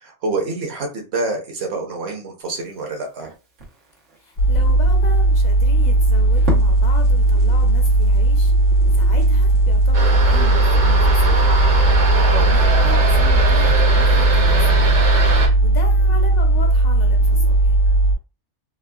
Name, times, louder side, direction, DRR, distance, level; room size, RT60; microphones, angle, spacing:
voice 1, 0.0-3.3 12.3-12.5, right 3 dB, 65° right, 1.1 m, -27 dB
Crackle, 2.4-10.2, right 2 dB, 90° right, 1.3 m, -36 dB
voice 2, 4.2-8.5 8.9-11.5 11.8-14.9 15.6-17.7, left 3 dB, 50° left, 0.5 m, -35 dB
sound 1, 4.4-18.1, right 2 dB, 85° left, 1.1 m, -16 dB
sound 2, 9.9-15.5, right 2 dB, 45° right, 0.8 m, -22 dB
3.5 x 2.1 x 2.3 m
omnidirectional pair, 1.2 m